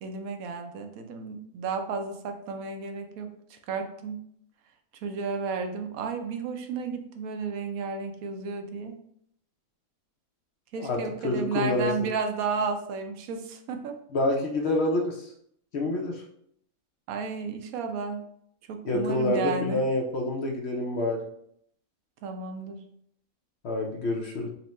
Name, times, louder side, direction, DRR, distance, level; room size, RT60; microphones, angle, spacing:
voice 1, 0.0-4.2 5.0-8.9 10.7-14.0 17.1-18.2 18.7-19.8 22.2-22.8, right 5 dB, 80° right, 6 dB, 1.0 m, -32 dB
voice 2, 10.7-11.9 14.1-15.2 15.7-16.2 18.9-21.2 23.6-24.5, left 2 dB, 60° left, 1 dB, 0.8 m, -27 dB
4.2 x 2.1 x 4.1 m, 0.70 s
omnidirectional pair, 1.5 m